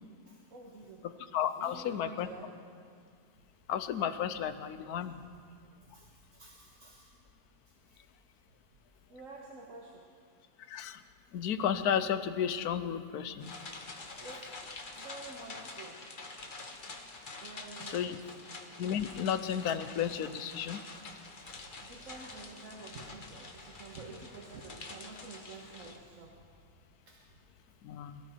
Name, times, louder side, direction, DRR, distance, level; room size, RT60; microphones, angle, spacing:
voice 1, 0.3-1.1 1.6-2.6 5.8-7.1 7.7-8.0 9.1-10.1 14.2-14.5 14.9-16.0 17.3-18.4 21.7-26.3 27.1-27.2, right 3 dB, 60° right, -2 dB, 1.8 m, -49 dB
voice 2, 1.0-2.3 3.7-5.2 10.7-11.0 11.3-13.5 17.8-18.2 18.8-20.8 27.8-28.2, left 8 dB, 85° left, 12 dB, 1.2 m, -33 dB
sound 1, 13.4-26.0, left 3 dB, 35° left, 1.1 m, -47 dB
23.0 x 13.0 x 4.5 m, 2.1 s
omnidirectional pair, 1.6 m